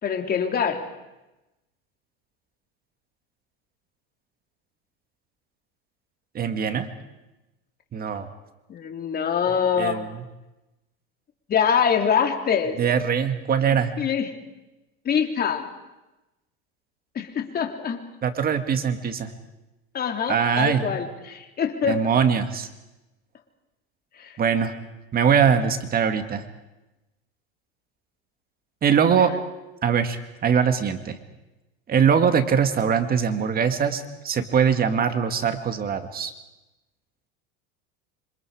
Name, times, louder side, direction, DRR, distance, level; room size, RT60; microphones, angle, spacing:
voice 1, 0.0-0.8 8.7-10.0 11.5-12.8 14.0-14.3 15.0-15.7 17.1-18.0 19.9-22.0 24.2-24.3, left 7 dB, 30° left, 4 dB, 3.2 m, -24 dB
voice 2, 6.3-6.9 7.9-8.3 9.7-10.2 12.8-13.9 18.2-19.3 20.3-20.9 21.8-22.7 24.4-24.7 25.1-26.4 28.8-29.3 29.8-31.2 31.9-36.3, right 7 dB, 30° right, 8 dB, 2.0 m, -22 dB
27.0 x 26.0 x 4.9 m, 1.0 s
supercardioid pair, 120°, 30 cm